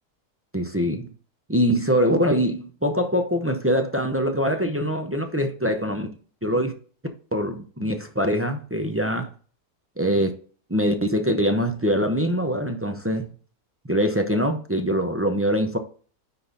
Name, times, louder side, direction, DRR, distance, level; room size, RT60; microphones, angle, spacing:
voice 1, 0.5-1.1 1.5-6.1 6.4-6.7 7.3-9.3 10.0-10.4 10.7-13.3 13.9-15.8, equal, 20° right, 0.3 m, -23 dB
9.7 x 3.9 x 4.0 m
omnidirectional pair, 1.7 m